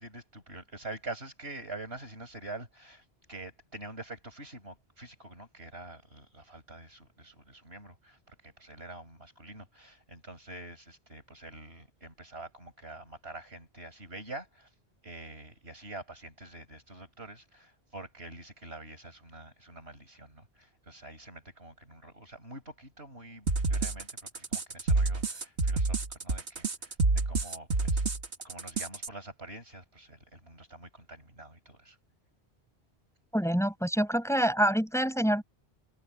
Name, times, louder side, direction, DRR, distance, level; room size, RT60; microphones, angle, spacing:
voice 1, 0.0-14.7 15.0-28.0 28.4-32.0, right 2 dB, 70° right, 6.2 m, -46 dB
sound 1, 23.5-29.1, right 3 dB, 85° right, 2.1 m, -28 dB
voice 2, 33.3-35.4, equal, 5° left, 5.1 m, -26 dB
omnidirectional pair, 1.1 m